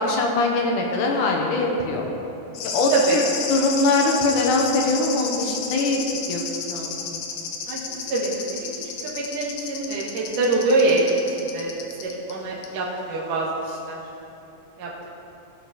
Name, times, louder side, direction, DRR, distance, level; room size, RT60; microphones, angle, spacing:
voice 1, 0.0-2.0 2.6-6.0 6.3-7.1, left 2 dB, 70° left, 1 dB, 2.4 m, -22 dB
sound 1, 2.5-12.3 12.6-12.7, left 6 dB, 90° left, 2.7 m, -32 dB
voice 2, 8.1-8.7 9.0-11.7 12.0-14.0 14.8-14.9, right 2 dB, 75° right, -3 dB, 2.9 m, -24 dB
18.5 x 6.4 x 4.1 m, 2.9 s
omnidirectional pair, 3.9 m